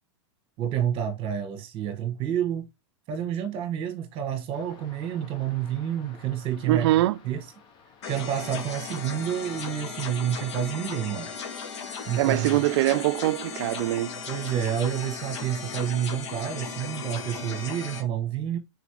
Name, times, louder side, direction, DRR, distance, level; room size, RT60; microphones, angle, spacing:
voice 1, 0.6-2.7 3.1-6.9 7.2-7.4 8.0-11.3 12.0-12.6 14.3-18.6, right 9 dB, 35° right, 1.2 m, -29 dB
sound 1, 4.5-11.0, left 5 dB, 30° left, 1.0 m, -54 dB
voice 2, 6.7-7.2 12.1-14.1, right 16 dB, 65° right, 0.4 m, -23 dB
sound 2, 8.0-18.0, left 6 dB, 75° left, 1.5 m, -37 dB
4.0 x 4.0 x 2.9 m
supercardioid pair, 140°, 15 cm